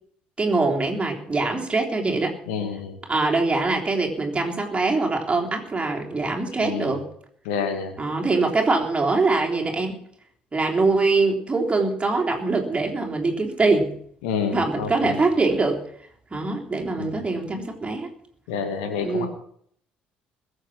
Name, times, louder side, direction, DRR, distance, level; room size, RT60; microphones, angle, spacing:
voice 1, 0.4-2.3 3.1-7.0 8.0-10.0 10.5-13.9 14.5-15.8 16.3-18.1 19.0-19.3, right 3 dB, 20° right, 1 dB, 3.7 m, -23 dB
voice 2, 2.5-3.0 6.6-6.9 7.5-7.9 14.2-15.2 17.0-17.1 18.5-19.3, left 6 dB, 70° left, 7 dB, 2.3 m, -28 dB
21.0 x 7.8 x 6.2 m, 0.64 s
figure-of-eight pair, 55°, 5 cm